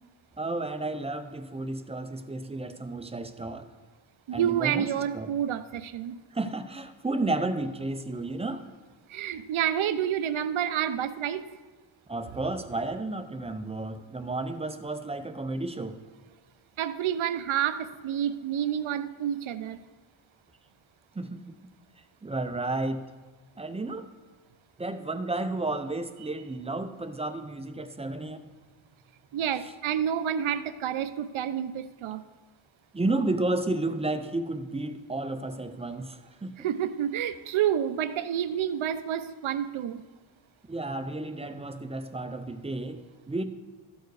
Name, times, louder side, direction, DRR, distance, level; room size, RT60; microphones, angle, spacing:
voice 1, 0.4-3.7 4.3-5.3 6.3-8.6 12.1-16.0 21.2-21.5 22.2-23.1 23.6-24.1 24.8-28.5 29.6-29.7 32.9-36.5 40.7-43.5, right 2 dB, 15° right, 8 dB, 0.3 m, -32 dB
voice 2, 4.3-6.2 9.1-11.4 16.8-19.8 29.3-32.2 36.6-40.0, right 9 dB, 75° right, 12 dB, 0.6 m, -29 dB
13.0 x 4.6 x 4.7 m, 1.3 s
wide cardioid pair, 165°, 48 cm